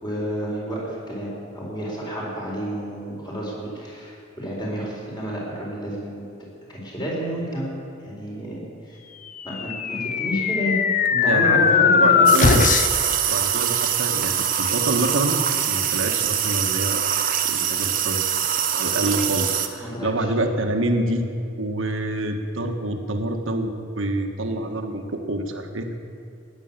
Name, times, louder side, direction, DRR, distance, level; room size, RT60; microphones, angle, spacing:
voice 1, 0.0-6.2 6.7-7.7 8.0-9.0 9.4-10.8 11.1-12.3 19.8-20.3, equal, 20° left, -4 dB, 4.2 m, -30 dB
sound 1, 9.5-13.1, left 6 dB, 40° left, 0.6 m, -19 dB
voice 2, 11.3-11.7 11.9-12.7 13.3-15.4 15.7-18.2 18.6-21.2 21.6-25.9, right 1 dB, 80° right, 4 dB, 1.5 m, -27 dB
sound 2, 12.3-19.7, right 9 dB, 45° right, 1.1 m, -23 dB
16.5 x 10.5 x 7.3 m, 2.6 s
head